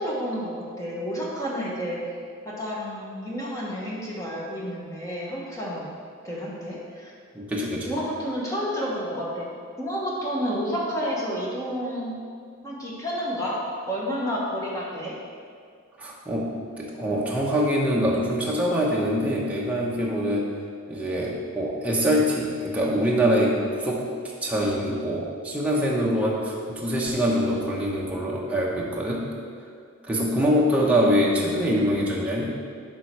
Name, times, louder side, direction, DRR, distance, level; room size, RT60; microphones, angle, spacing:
voice 1, 0.0-2.0 2.4-5.9 6.2-7.1 7.8-9.5 9.8-12.1 12.6-13.6 13.8-15.2, equal, 15° left, -5 dB, 1.3 m, -30 dB
voice 2, 7.3-7.9 16.0-20.5 20.9-24.1 24.4-29.3 30.1-32.5, equal, 5° right, -4 dB, 0.9 m, -24 dB
11.0 x 3.8 x 4.6 m, 2.1 s
head